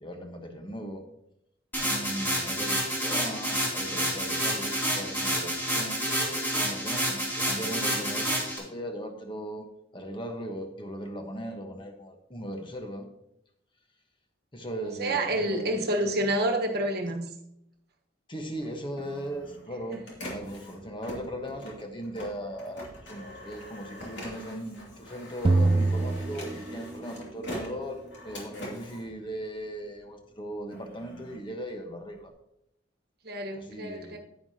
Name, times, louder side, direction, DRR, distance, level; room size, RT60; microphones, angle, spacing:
voice 1, 0.0-1.0 1.8-9.6 9.9-13.0 14.5-16.5 18.3-20.0 20.3-32.3 33.5-34.2, equal, 25° left, 4 dB, 1.2 m, -38 dB
sound 1, 1.7-8.6, right 1 dB, 10° left, 2.9 m, -29 dB
voice 2, 15.0-17.3 33.2-34.2, right 1 dB, 55° right, 4 dB, 1.3 m, -28 dB
Printer, 18.6-30.0 30.4-32.3, left 1 dB, 75° left, 2.7 m, -44 dB
sound 2, 25.4-27.2, right 2 dB, 25° right, 0.3 m, -25 dB
9.8 x 9.5 x 2.9 m, 0.78 s
head